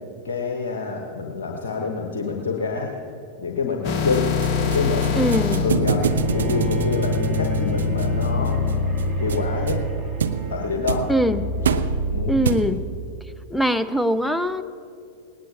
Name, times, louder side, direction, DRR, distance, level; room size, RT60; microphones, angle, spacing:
voice 1, 0.2-2.9 3.4-5.2 5.6-6.0 6.3-8.6 9.2-9.8 10.5-11.1 12.1-12.4, left 4 dB, 65° left, 2 dB, 1.2 m, -27 dB
sound 1, 3.8-12.2, left 3 dB, 40° left, 1.2 m, -25 dB
sound 2, 4.1-13.0, right 6 dB, 65° right, 0.5 m, -28 dB
voice 2, 5.2-5.7 11.1-11.5 12.3-12.8 13.5-14.6, equal, 5° left, 13 dB, 0.5 m, -22 dB
Bowed string instrument, 6.0-12.1, right 4 dB, 15° right, 2.3 m, -33 dB
19.5 x 18.5 x 2.9 m, 2.4 s
figure-of-eight pair, 90°, 0 cm